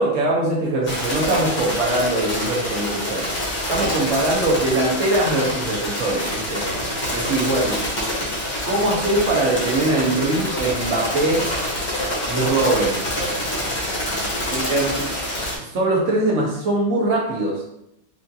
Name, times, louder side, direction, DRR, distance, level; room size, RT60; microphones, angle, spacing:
voice 1, 0.0-3.3 3.7-6.7 7.1-7.9 8.6-11.5 12.2-13.0 14.5-15.2 15.5-17.7, right 2 dB, 60° right, -3 dB, 0.8 m, -22 dB
sound 1, 0.9-15.6, left 1 dB, 40° left, 0.9 m, -26 dB
sound 2, 6.5-6.8 7.3-7.6 9.0-9.3 10.5-10.8 11.9-12.2 13.2-13.5, right 1 dB, 70° left, 0.6 m, -36 dB
4.7 x 2.4 x 2.7 m, 0.80 s
omnidirectional pair, 2.2 m